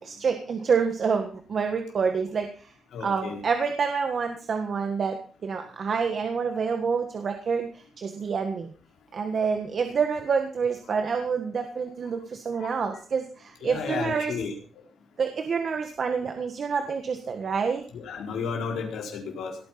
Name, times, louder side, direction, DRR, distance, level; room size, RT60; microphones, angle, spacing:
voice 1, 0.0-2.7 3.0-8.7 9.1-14.3 15.2-17.9, right 5 dB, 45° right, 5 dB, 1.6 m, -27 dB
voice 2, 2.9-3.4 10.9-11.0 12.6-12.9 13.6-14.8 17.9-19.6, left 5 dB, 80° left, 1 dB, 4.3 m, -33 dB
18.5 x 9.1 x 5.8 m, 0.41 s
cardioid pair, 150°, 0 cm